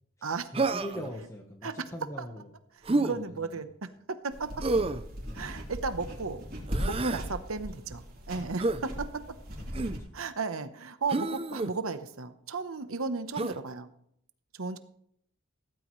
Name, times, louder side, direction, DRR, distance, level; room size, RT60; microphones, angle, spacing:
voice 1, 0.2-2.5 2.9-3.6 5.2-5.5 9.8-10.2, equal, 15° left, 2 dB, 1.1 m, -42 dB
Human voice, 0.5-1.1 2.8-3.1 4.6-5.0 6.7-7.2 8.6-8.8 9.7-10.0 11.1-11.7 13.3-13.6, right 3 dB, 25° right, 0.5 m, -29 dB
voice 2, 2.7-3.9 4.2-4.6 5.3-6.4 6.8-9.4 10.1-13.9 14.5-14.8, right 4 dB, 80° right, 11 dB, 1.0 m, -35 dB
sound 1, 4.3-10.0, equal, 45° right, 3.6 m, -38 dB
17.0 x 14.0 x 3.2 m, 0.71 s
head